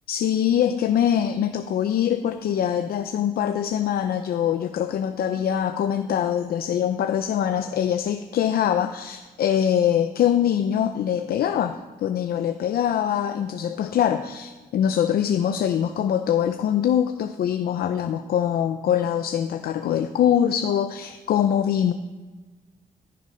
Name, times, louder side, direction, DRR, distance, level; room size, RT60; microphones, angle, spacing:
voice 1, 0.1-21.9, left 9 dB, 75° left, 8 dB, 0.6 m, -23 dB
13.5 x 6.7 x 5.5 m, 1.3 s
cardioid pair, 135°, 16 cm